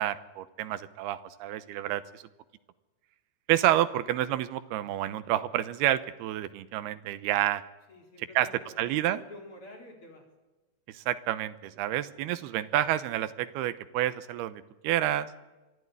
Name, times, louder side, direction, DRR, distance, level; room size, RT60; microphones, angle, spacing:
voice 1, 0.0-2.2 3.5-7.6 8.4-8.5 8.8-9.2 10.9-15.3, right 13 dB, 80° right, 12 dB, 2.9 m, -29 dB
voice 2, 7.9-10.3, left 1 dB, 35° left, 2 dB, 4.4 m, -48 dB
25.0 x 15.0 x 9.6 m, 1.1 s
omnidirectional pair, 4.5 m